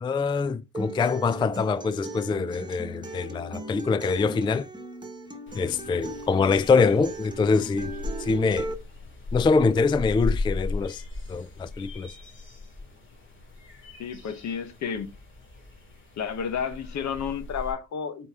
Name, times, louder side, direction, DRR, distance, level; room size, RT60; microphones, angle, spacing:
voice 1, 0.0-4.7 5.6-7.9 8.2-8.7 9.3-11.0 11.3-12.1, left 4 dB, 15° left, 0.3 m, -24 dB
Acoustic guitar, 0.7-8.7, right 3 dB, 15° right, 1.3 m, -38 dB
sound 1, 5.5-17.7, left 3 dB, 40° left, 2.3 m, -37 dB
voice 2, 14.0-15.1 16.2-18.3, left 7 dB, 65° left, 1.1 m, -31 dB
7.8 x 4.1 x 3.6 m
cardioid pair, 90°, 30 cm